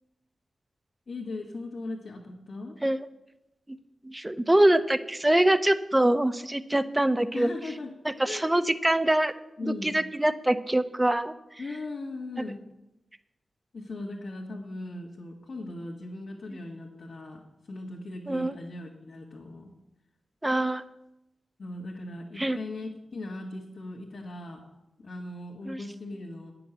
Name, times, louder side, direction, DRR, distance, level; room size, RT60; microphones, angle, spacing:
voice 1, 1.1-2.8 7.3-8.0 8.2-8.5 9.6-9.9 11.6-12.6 13.7-19.7 21.6-24.6 25.0-26.5, left 2 dB, 70° left, -3 dB, 1.9 m, -38 dB
voice 2, 4.0-7.5 8.0-9.3 9.6-11.3 12.4-12.5 18.3-18.6 20.4-20.8 22.4-22.6 25.7-25.8, right 1 dB, 15° right, 12 dB, 0.8 m, -24 dB
8.7 x 6.9 x 8.1 m, 0.93 s
cardioid pair, 55°, 0 cm